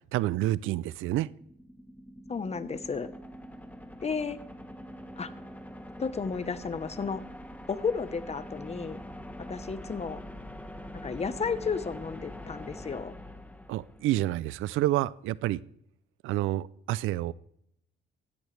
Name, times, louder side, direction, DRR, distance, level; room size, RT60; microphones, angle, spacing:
voice 1, 0.1-1.3 13.7-15.6 16.2-17.3, right 15 dB, 90° right, 20 dB, 0.4 m, -28 dB
sound 1, 1.3-14.3, equal, 5° left, 1.2 m, -44 dB
voice 2, 2.3-3.1 4.0-4.4 5.2-5.3 6.0-7.2 7.7-9.0 9.5-10.2 11.0-13.1, left 5 dB, 35° left, 13 dB, 1.0 m, -33 dB
16.0 x 12.5 x 3.3 m, 0.72 s
cardioid pair, 90°, 20 cm